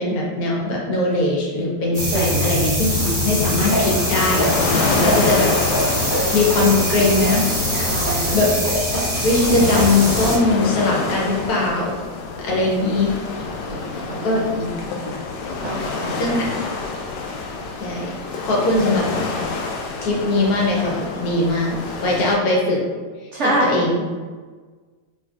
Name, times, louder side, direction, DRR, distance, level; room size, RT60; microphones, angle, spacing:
voice 1, 0.0-4.7 5.0-5.5 6.3-11.9 12.4-13.1 14.2-14.7 16.2-16.5 17.8-18.1 18.4-19.1 20.0-22.8 23.4-24.1, left 2 dB, 65° left, -3 dB, 1.3 m, -21 dB
sound 1, 1.9-10.4, equal, 15° left, 1.0 m, -22 dB
voice 2, 2.1-2.6 4.8-5.1 7.9-8.4 13.7-14.5 15.6-16.4 23.3-23.8, right 2 dB, 85° right, -3 dB, 0.6 m, -26 dB
sound 2, 2.9-22.4, left 4 dB, 90° left, 1.2 m, -27 dB
4.5 x 3.3 x 2.3 m, 1.4 s
omnidirectional pair, 1.8 m